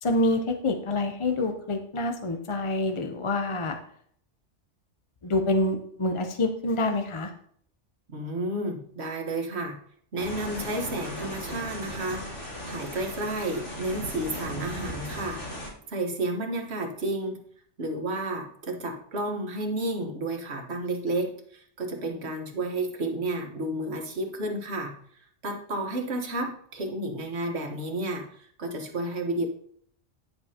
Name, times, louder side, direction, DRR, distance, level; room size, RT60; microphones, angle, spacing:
voice 1, 0.0-3.8 5.2-7.3, left 2 dB, 30° left, 5 dB, 0.6 m, -27 dB
voice 2, 8.1-9.8 10.1-15.4 15.9-17.4 17.8-24.9 25.4-29.5, right 1 dB, 65° right, 2 dB, 1.6 m, -31 dB
sound 1, 10.2-15.7, equal, 75° left, 2.9 m, -37 dB
10.5 x 7.0 x 2.9 m, 0.62 s
omnidirectional pair, 1.2 m